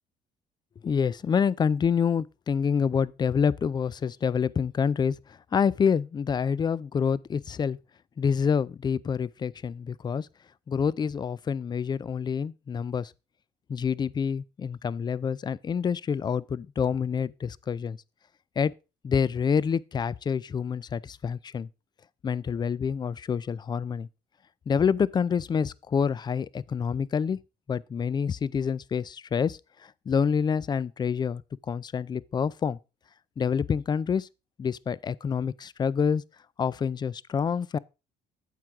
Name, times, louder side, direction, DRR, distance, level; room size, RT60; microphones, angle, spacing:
voice 1, 0.8-5.2 5.5-7.8 8.2-10.3 10.7-13.1 13.7-18.0 18.6-18.7 19.0-21.7 22.2-24.1 24.7-27.4 27.7-31.4 31.7-32.8 33.4-34.3 34.6-36.2 36.6-37.8, left 6 dB, 25° left, 0.3 m, -27 dB
9.3 x 7.6 x 3.6 m
cardioid pair, 110°, 17 cm